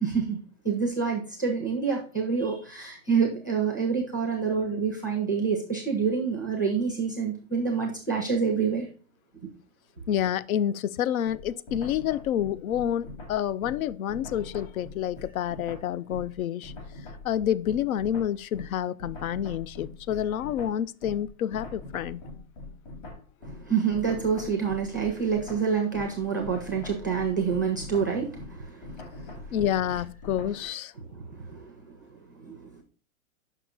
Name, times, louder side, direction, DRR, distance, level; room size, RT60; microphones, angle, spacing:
voice 1, 0.0-0.4 0.6-8.9 23.4-29.7 31.0-32.0 32.4-32.8, right 6 dB, 15° right, 0.4 m, -28 dB
voice 2, 10.1-16.7 17.2-22.2 29.5-30.9, left 10 dB, 80° left, 0.5 m, -28 dB
sound 1, 11.2-16.4 16.6-30.6, left 2 dB, 35° left, 2.2 m, -43 dB
6.3 x 5.5 x 4.0 m
hypercardioid pair, 180°, 41 cm